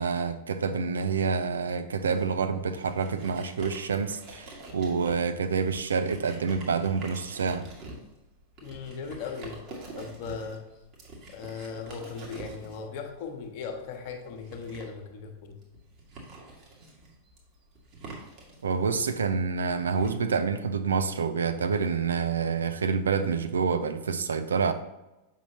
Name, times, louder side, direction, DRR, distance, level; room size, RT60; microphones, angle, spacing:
voice 1, 0.0-7.7 18.6-24.7, right 5 dB, 70° right, 10 dB, 0.4 m, -27 dB
sound 1, 2.0-20.1, right 2 dB, 40° right, 1.8 m, -47 dB
voice 2, 8.6-9.7 10.0-10.6 11.3-15.6, left 5 dB, 45° left, 4 dB, 1.0 m, -38 dB
7.4 x 5.5 x 2.8 m, 0.99 s
figure-of-eight pair, 90°, 0 cm